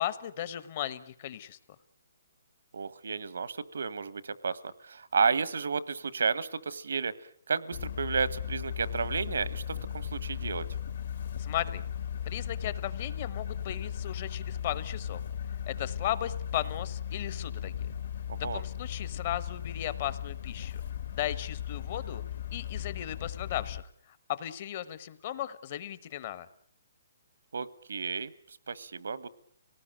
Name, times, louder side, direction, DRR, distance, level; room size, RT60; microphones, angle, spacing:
voice 1, 0.0-1.6 11.4-11.8 12.3-15.2 15.7-17.7 18.5-20.8 21.1-22.2 22.5-23.8 24.3-26.5, left 12 dB, 35° left, 15 dB, 1.1 m, -36 dB
voice 2, 2.7-7.1 7.5-9.6 9.9-10.7 18.4-18.6 27.5-28.3 28.7-29.3, right 5 dB, 80° right, 17 dB, 1.2 m, -32 dB
sound 1, 7.7-23.8, left 9 dB, 55° left, 1.7 m, -37 dB
25.0 x 18.5 x 8.9 m, 0.67 s
hypercardioid pair, 170°, 0 cm